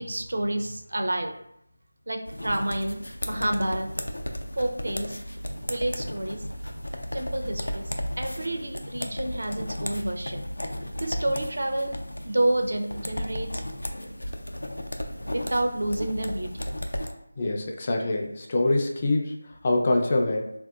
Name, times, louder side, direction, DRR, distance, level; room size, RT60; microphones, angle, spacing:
voice 1, 0.0-1.3 2.1-3.0 3.3-3.9 4.6-5.2 5.7-6.4 7.1-7.8 8.2-10.4 11.0-12.0 12.3-13.6 15.3-16.7, right 1 dB, 70° right, 4 dB, 0.6 m, -29 dB
sound 1, 2.3-17.1, equal, 90° left, 0.5 m, -34 dB
voice 2, 17.4-19.3 19.6-20.5, left 2 dB, 30° left, 1 dB, 0.4 m, -24 dB
3.3 x 2.5 x 2.4 m, 0.76 s
figure-of-eight pair, 170°, 0 cm